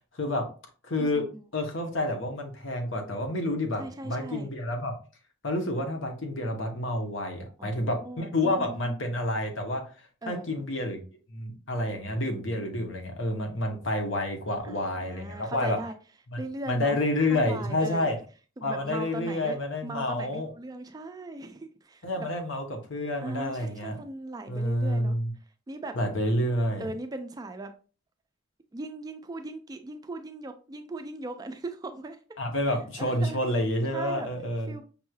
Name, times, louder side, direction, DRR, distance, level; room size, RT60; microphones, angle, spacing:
voice 1, 0.1-0.5 0.8-1.2 1.5-4.9 5.4-9.8 10.3-11.0 11.3-15.8 16.3-16.4 16.7-18.1 18.6-20.5 22.0-23.9 24.5-25.3 25.9-26.8 32.4-34.7, left 1 dB, 70° left, 3 dB, 0.9 m, -29 dB
voice 2, 1.0-1.4 3.8-4.5 7.6-9.0 10.2-10.5 14.6-16.0 16.4-17.0 17.3-18.1 18.6-22.3 23.2-25.2 25.7-26.0 26.8-27.7 28.7-32.2 33.0-33.4 33.9-34.3 34.7-34.8, right 2 dB, 20° right, 7 dB, 0.3 m, -39 dB
5.3 x 3.0 x 2.3 m, 0.36 s
head